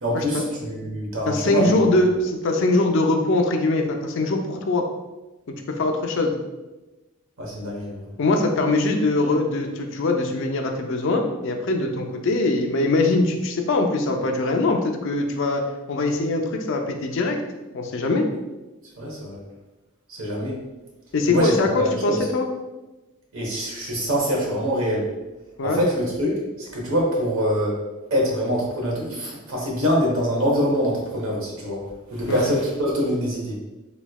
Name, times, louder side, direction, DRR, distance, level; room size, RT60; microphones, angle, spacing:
voice 1, 0.0-1.7 7.4-8.0 19.0-19.4 20.1-20.6 21.3-22.2 23.3-25.1 25.6-27.7 28.1-31.8 32.1-33.6, equal, 85° right, -3 dB, 1.0 m, -24 dB
voice 2, 1.3-4.9 5.8-6.3 8.2-15.6 15.9-17.4 17.7-18.3 21.1-22.5 25.6-25.8 32.3-32.5, left 2 dB, 65° left, 3 dB, 0.4 m, -22 dB
3.4 x 3.0 x 2.3 m, 1.1 s
head